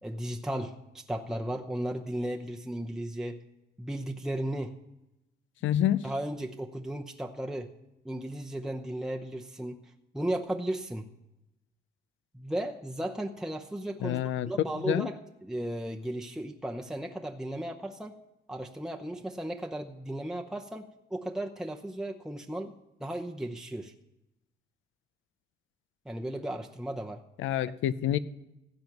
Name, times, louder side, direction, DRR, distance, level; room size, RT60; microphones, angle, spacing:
voice 1, 0.0-3.4 3.8-4.7 6.0-7.7 8.0-11.0 12.3-18.1 18.5-22.7 23.0-23.9 26.1-27.2, right 1 dB, 5° right, 2 dB, 0.7 m, -35 dB
voice 2, 5.6-6.0 14.0-14.5 14.9-15.1 27.4-28.2, left 11 dB, 80° left, 16 dB, 0.6 m, -27 dB
16.0 x 7.8 x 5.9 m, 0.94 s
cardioid pair, 90°, 20 cm